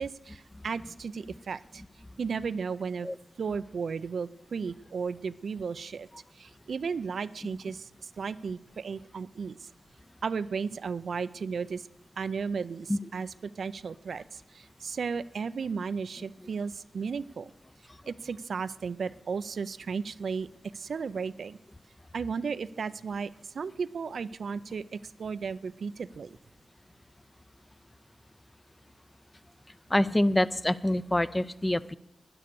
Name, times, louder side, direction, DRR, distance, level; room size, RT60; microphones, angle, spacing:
voice 1, 0.0-1.8 2.2-3.1 3.4-6.1 6.4-9.7 10.2-11.9 12.2-17.5 18.1-20.5 20.7-21.6 22.1-26.4, right 5 dB, 80° right, 14 dB, 0.4 m, -34 dB
voice 2, 29.9-31.9, left 1 dB, 20° left, 15 dB, 0.5 m, -26 dB
11.5 x 10.0 x 6.8 m, 0.81 s
cardioid pair, 60°, 0 cm